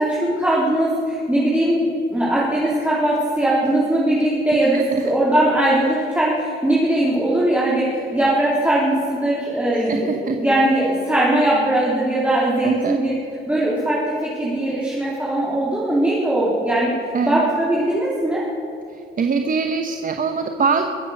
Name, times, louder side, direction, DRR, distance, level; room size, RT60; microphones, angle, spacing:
voice 1, 0.0-4.8 5.0-13.2 13.5-16.9 17.2-18.4, right 1 dB, 5° right, -7 dB, 3.5 m, -20 dB
voice 2, 4.7-5.1 9.7-10.4 12.6-13.0 17.1-17.5 18.9-20.9, right 5 dB, 45° right, 5 dB, 1.0 m, -23 dB
22.5 x 7.8 x 6.5 m, 2.6 s
cardioid pair, 90°, 20 cm